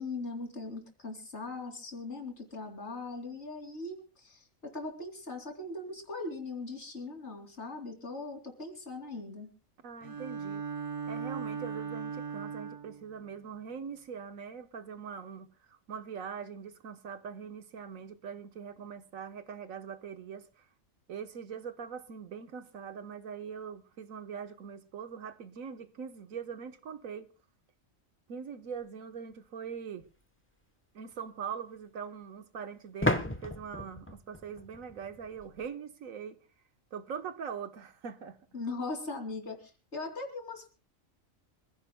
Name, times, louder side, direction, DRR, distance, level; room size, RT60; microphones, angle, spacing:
voice 1, 0.0-9.5 38.5-40.7, left 3 dB, 55° left, 3.3 m, -40 dB
voice 2, 9.8-10.6 11.1-20.7 21.1-27.3 28.3-30.1 30.9-36.4 36.9-38.4, right 7 dB, 85° right, 1.5 m, -42 dB
Bowed string instrument, 10.0-13.1, right 6 dB, 30° right, 0.7 m, -38 dB
sound 1, 30.0-30.1 33.0-35.7, left 1 dB, 10° left, 1.0 m, -33 dB
26.5 x 15.5 x 2.2 m
omnidirectional pair, 1.4 m